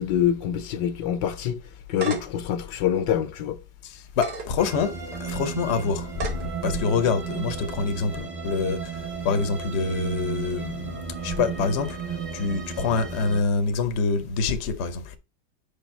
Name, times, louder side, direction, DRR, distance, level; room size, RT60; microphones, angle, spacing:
voice 1, 0.0-1.6 1.9-3.6, left 9 dB, 80° left, 1.4 m, -25 dB
sound 1, 1.6-2.4 3.0-3.1 4.1-4.5 5.1-5.2 6.1-6.5, right 4 dB, 65° right, 1.8 m, -32 dB
voice 2, 3.8-4.9 5.2-6.3 6.6-8.8 9.2-12.0 12.3-15.0, left 4 dB, 50° left, 0.9 m, -26 dB
sound 2, 4.6-13.4, right 6 dB, 30° right, 0.7 m, -34 dB
5.2 x 4.8 x 4.4 m
omnidirectional pair, 1.9 m